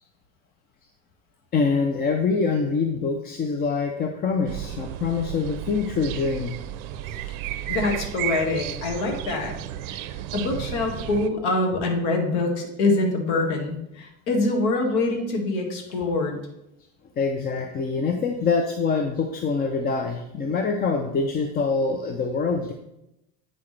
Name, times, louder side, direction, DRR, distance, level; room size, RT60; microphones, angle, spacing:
voice 1, 1.5-6.6 17.2-22.7, left 4 dB, 25° left, 5 dB, 0.4 m, -25 dB
sound 1, 4.5-11.3, right 12 dB, 55° right, 0.6 m, -33 dB
voice 2, 7.7-9.5 9.9-10.0 10.3-16.4, left 2 dB, 70° left, 2 dB, 1.9 m, -25 dB
8.5 x 5.7 x 3.3 m, 0.85 s
cardioid pair, 135°, 40 cm